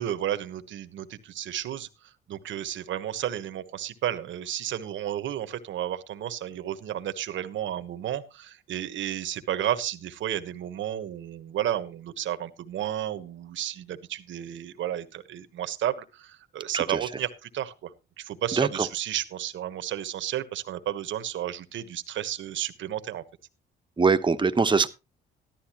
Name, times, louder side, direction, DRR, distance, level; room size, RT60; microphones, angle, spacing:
voice 1, 0.0-17.9 18.2-23.2, right 11 dB, 75° right, 12 dB, 1.2 m, -32 dB
voice 2, 18.6-18.9 24.0-24.9, right 4 dB, 25° right, 9 dB, 1.1 m, -22 dB
14.0 x 12.0 x 3.0 m, 0.27 s
cardioid pair, 90°, 20 cm